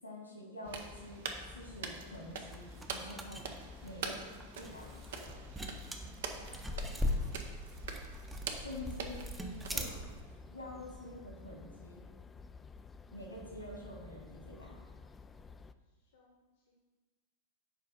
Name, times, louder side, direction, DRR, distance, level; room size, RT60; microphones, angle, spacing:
voice 1, 0.0-3.5 3.8-5.4 8.5-9.2 9.7-9.9 10.5-12.0 13.1-14.8, left 1 dB, 85° left, -1 dB, 2.2 m, -47 dB
sound 1, 0.6-15.7, left 4 dB, 15° left, 0.3 m, -52 dB
sound 2, 0.7-10.4, right 5 dB, 60° right, 0.8 m, -45 dB
sound 3, 2.5-10.2, left 1 dB, 10° right, 0.7 m, -40 dB
voice 2, 6.0-7.4 9.8-10.0 16.0-16.7, left 1 dB, 60° left, -1 dB, 1.1 m, -60 dB
7.5 x 5.0 x 5.2 m, 1.3 s
figure-of-eight pair, 90°, 0 cm